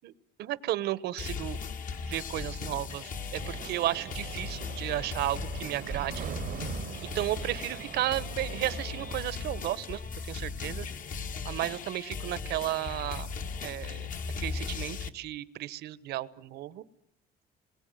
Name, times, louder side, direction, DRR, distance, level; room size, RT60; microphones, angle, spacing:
voice 1, 0.4-1.6 2.0-6.3 7.1-10.9 11.4-13.3 13.6-14.1 14.4-16.8, right 14 dB, 75° right, 17 dB, 1.2 m, -33 dB
sound 1, 1.2-15.1, left 5 dB, 55° left, 1.8 m, -38 dB
sound 2, 3.3-9.2, right 10 dB, 55° right, 1.0 m, -42 dB
28.0 x 22.5 x 9.3 m, 0.76 s
cardioid pair, 110°, 17 cm